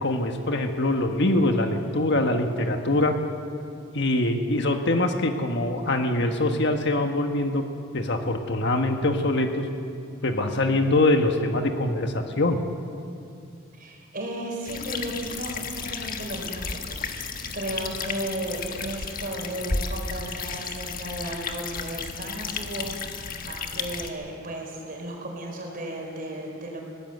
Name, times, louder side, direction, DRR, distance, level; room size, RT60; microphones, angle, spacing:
voice 1, 0.0-3.2 3.9-7.6 7.9-9.6 10.2-12.6, left 2 dB, 60° left, 5 dB, 1.5 m, -23 dB
voice 2, 13.7-26.8, right 1 dB, 45° right, 1 dB, 4.5 m, -35 dB
sound 1, 14.7-24.1, left 4 dB, 45° left, 1.4 m, -33 dB
21.0 x 17.5 x 8.0 m, 2.4 s
head